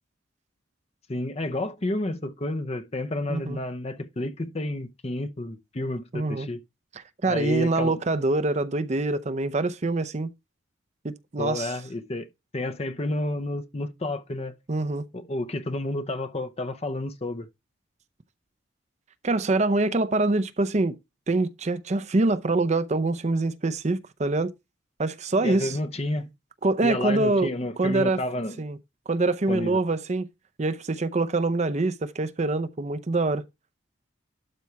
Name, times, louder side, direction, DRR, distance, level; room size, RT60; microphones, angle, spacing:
voice 1, 1.1-6.6 7.2-8.0 11.4-12.3 12.5-14.5 15.1-17.5 25.4-26.3 26.8-28.6 29.5-29.8, left 1 dB, 30° left, 0.7 m, -30 dB
voice 2, 6.1-6.5 7.2-10.3 11.0-11.7 14.7-15.0 19.2-21.0 21.3-24.5 25.0-25.8 26.6-27.5 27.8-28.2 28.6-28.8 29.1-30.3 30.6-33.4, right 2 dB, 35° right, 0.6 m, -25 dB
12.0 x 4.1 x 4.6 m
head